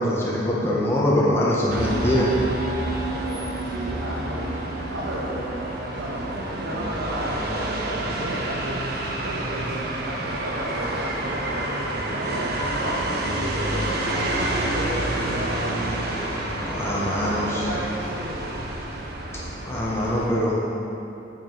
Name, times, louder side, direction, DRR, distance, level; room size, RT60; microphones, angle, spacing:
voice 1, 0.0-2.3 16.6-17.6 19.7-20.6, left 1 dB, 15° left, -6 dB, 1.5 m, -23 dB
sound 1, 1.7-20.3, right 1 dB, 55° right, 1.1 m, -28 dB
voice 2, 3.6-8.9 9.2-13.0 13.3-15.7 17.1-18.3, equal, 85° right, -6 dB, 1.4 m, -33 dB
8.8 x 7.3 x 5.7 m, 2.8 s
head